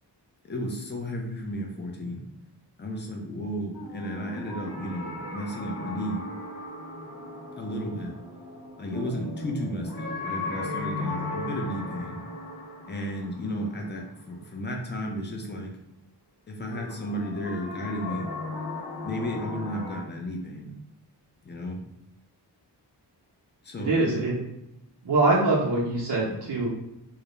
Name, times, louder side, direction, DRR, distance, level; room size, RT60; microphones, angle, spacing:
voice 1, 0.4-2.2 2.8-6.2 7.6-8.1 8.8-12.2 12.9-15.7 16.5-18.3 19.0-20.7 21.4-21.8 23.6-24.2, equal, 25° left, 1 dB, 0.4 m, -33 dB
sound 1, 3.7-14.6 16.7-20.0, left 2 dB, 55° left, 0.7 m, -37 dB
voice 2, 23.8-24.3 25.0-26.7, right 2 dB, 75° right, -6 dB, 0.7 m, -23 dB
2.4 x 2.0 x 2.9 m, 0.85 s
wide cardioid pair, 110°, 42 cm